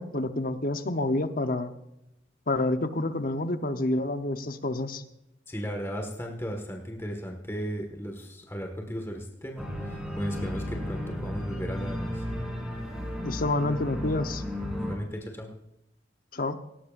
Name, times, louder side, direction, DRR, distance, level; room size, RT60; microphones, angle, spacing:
voice 1, 0.0-1.7 2.5-5.0 13.2-14.4 16.3-16.6, left 2 dB, 50° left, 8 dB, 1.0 m, -28 dB
voice 2, 5.5-12.3 14.8-15.5, equal, 15° left, 2 dB, 1.7 m, -36 dB
Organ, 9.6-15.0, left 1 dB, 5° right, 4.1 m, -34 dB
18.0 x 18.0 x 2.6 m, 0.87 s
head